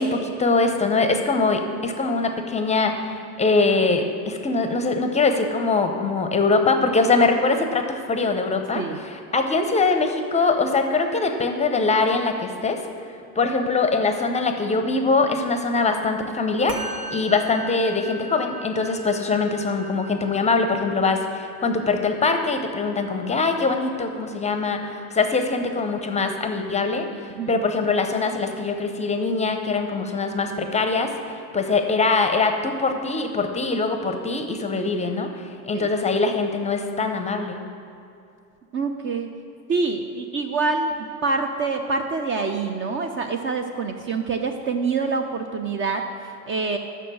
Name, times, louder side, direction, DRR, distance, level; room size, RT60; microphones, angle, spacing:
voice 1, 0.0-12.8 13.4-16.8 17.1-37.6, left 3 dB, 15° left, 6 dB, 0.6 m, -23 dB
Musical instrument, 16.7-26.2, right 2 dB, 55° right, 1.2 m, -40 dB
voice 2, 38.7-39.3 39.7-40.9 41.2-46.8, right 4 dB, 30° right, 5 dB, 0.5 m, -26 dB
6.6 x 6.3 x 7.5 m, 2.5 s
hypercardioid pair, 85°, 44 cm